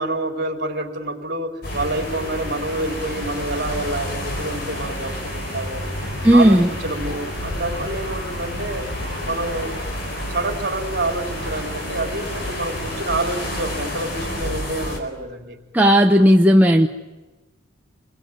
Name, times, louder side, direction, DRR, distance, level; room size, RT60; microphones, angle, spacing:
voice 1, 0.0-5.9 6.3-8.9 9.3-9.8 10.3-15.6, right 2 dB, 50° right, 4 dB, 3.9 m, -27 dB
sound 1, 1.6-15.0, left 1 dB, 50° left, 4.5 m, -29 dB
sound 2, 1.7-14.5, left 1 dB, 80° left, 6.8 m, -41 dB
voice 2, 6.2-6.7 15.7-16.9, equal, 10° right, 2 dB, 0.9 m, -13 dB
27.5 x 22.0 x 9.5 m, 1.1 s
head